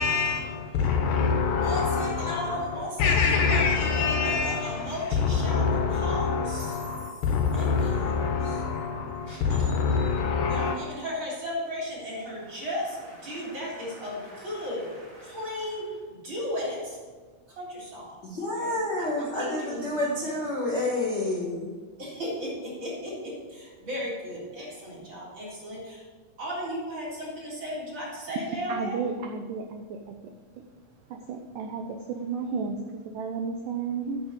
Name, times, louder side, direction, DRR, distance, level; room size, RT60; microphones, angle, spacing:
voice 1, 0.0-2.6 3.0-10.8, left 5 dB, 75° left, 2.2 m, -26 dB
voice 2, 1.5-8.6 9.2-10.2 10.5-17.0 17.5-20.3 22.0-26.0 26.4-29.0, equal, 30° right, 4.2 m, -36 dB
voice 3, 18.2-21.7, left 2 dB, 45° left, 1.4 m, -29 dB
voice 4, 28.7-30.2 31.1-32.8 33.1-34.2, right 5 dB, 80° right, 1.9 m, -32 dB
9.7 x 6.1 x 8.1 m
omnidirectional pair, 4.6 m